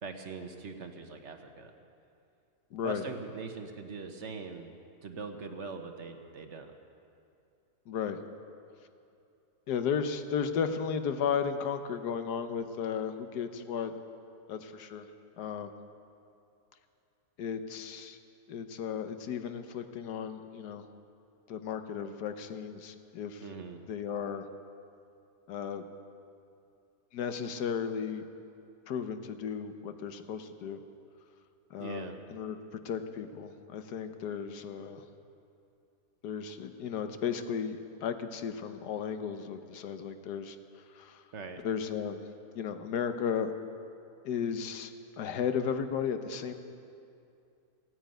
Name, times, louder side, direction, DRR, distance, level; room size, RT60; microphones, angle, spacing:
voice 1, 0.0-1.7 2.8-4.7 5.0-6.8 23.4-23.8 31.8-32.2 41.3-41.6, right 4 dB, 50° right, 6 dB, 1.2 m, -42 dB
voice 2, 2.7-3.0 7.9-8.2 9.7-13.9 14.5-15.1 15.4-15.7 17.4-18.2 18.5-20.9 21.5-23.4 23.9-24.4 25.5-25.8 27.1-28.2 28.9-30.8 31.7-35.1 36.2-40.6 40.9-41.2 41.6-42.2 42.5-43.5 44.2-44.9 45.2-46.5, left 7 dB, 80° left, 8 dB, 1.4 m, -34 dB
16.0 x 9.4 x 9.0 m, 2.6 s
omnidirectional pair, 1.7 m